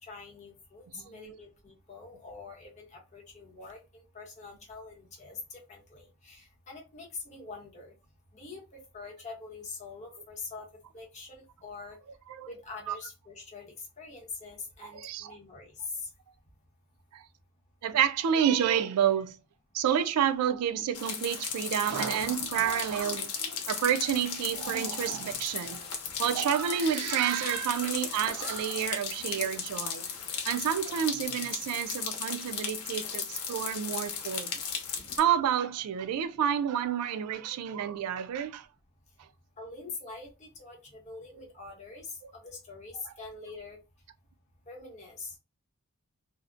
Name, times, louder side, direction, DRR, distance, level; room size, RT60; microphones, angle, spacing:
voice 1, 0.0-7.9 8.3-10.7 10.9-12.0 12.5-16.1 27.0-27.1 39.6-43.8 44.7-45.4, left 4 dB, 30° left, 0.8 m, -44 dB
voice 2, 14.8-15.3 17.1-17.2 17.8-19.3 19.7-25.8 26.2-30.0 30.4-34.6 35.2-38.7, right 9 dB, 90° right, 0.3 m, -29 dB
sound 1, 20.9-35.2, left 6 dB, 85° left, 0.7 m, -36 dB
2.5 x 2.0 x 2.5 m
head